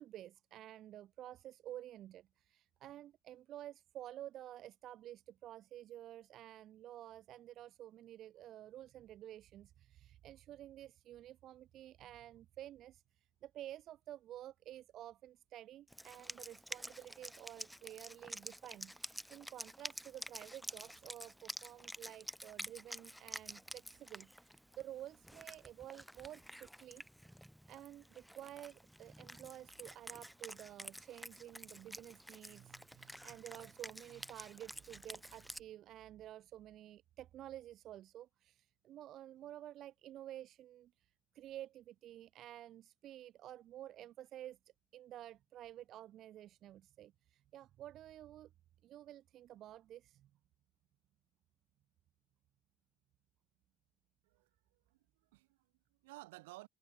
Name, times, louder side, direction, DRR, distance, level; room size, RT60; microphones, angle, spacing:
voice 1, 0.0-13.0 13.4-27.0 27.7-44.6 44.9-48.5 48.8-50.3, right 12 dB, 55° right, 0.4 m, -51 dB
Wind instrument woodwind instrument, 15.9-35.6, equal, ahead, 1.9 m, -50 dB
voice 2, 54.2-56.7, right 21 dB, 80° right, 1.1 m, -56 dB
hypercardioid pair, 70°, 0 cm